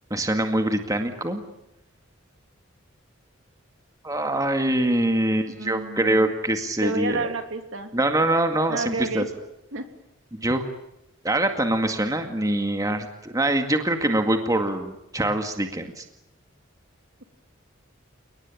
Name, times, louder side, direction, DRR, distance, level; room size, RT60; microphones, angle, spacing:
voice 1, 0.1-1.4 4.0-7.3 7.9-9.2 10.3-10.6 11.2-16.1, right 1 dB, 15° right, 5 dB, 2.1 m, -24 dB
voice 2, 5.5-6.3 6.8-7.9 8.7-9.3 9.7-9.8, right 3 dB, 70° right, 6 dB, 3.1 m, -30 dB
29.5 x 19.0 x 9.0 m, 0.86 s
head